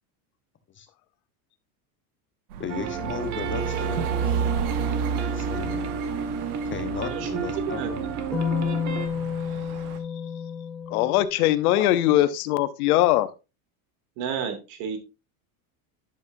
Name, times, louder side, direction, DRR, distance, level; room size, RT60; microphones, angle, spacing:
sound 1, 2.5-10.0, right 7 dB, 85° right, 1.5 m, -32 dB
voice 1, 2.6-4.4 5.3-5.9 6.7-8.1, left 7 dB, 25° left, 7 dB, 1.2 m, -35 dB
sound 2, 2.7-9.1, right 6 dB, 40° right, 1.7 m, -32 dB
sound 3, 3.5-5.8 8.3-11.2, left 6 dB, ahead, 3.4 m, -32 dB
voice 2, 7.1-7.9 9.5-9.6 14.2-15.0, right 7 dB, 60° right, 6 dB, 2.8 m, -31 dB
voice 3, 10.9-13.3, left 14 dB, 85° left, 13 dB, 1.0 m, -21 dB
10.5 x 7.3 x 2.7 m, 0.28 s
supercardioid pair, 120°, 43 cm